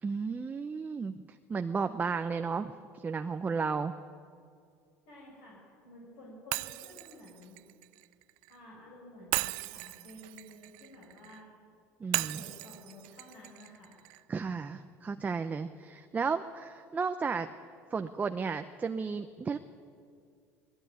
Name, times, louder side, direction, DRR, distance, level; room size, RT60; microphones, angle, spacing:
voice 1, 0.0-4.0 12.0-12.4 14.3-17.5 17.9-19.6, right 5 dB, 20° right, 8 dB, 0.7 m, -33 dB
voice 2, 5.1-7.6 8.5-11.5 12.1-14.0, left 1 dB, 70° left, -3 dB, 7.0 m, -52 dB
Shatter, 6.5-8.6 9.3-11.4 12.1-14.2, right 22 dB, 75° right, 0.5 m, -37 dB
19.5 x 16.0 x 9.7 m, 2.3 s
supercardioid pair, 100°, 7 cm